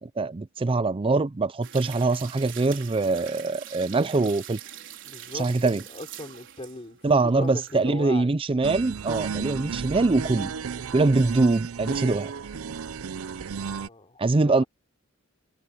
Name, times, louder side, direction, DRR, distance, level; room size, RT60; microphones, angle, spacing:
voice 1, 0.0-4.6 5.3-5.8 7.0-10.5 10.9-12.3 14.2-14.6, right 3 dB, 25° right, 0.4 m, -23 dB
sound 1, 1.6-7.9 8.2-8.3, right 10 dB, 60° right, 4.5 m, -44 dB
voice 2, 5.0-8.3 13.6-14.7, left 2 dB, 30° left, 3.6 m, -39 dB
sound 2, 8.6-13.9, right 6 dB, 75° right, 0.5 m, -33 dB
head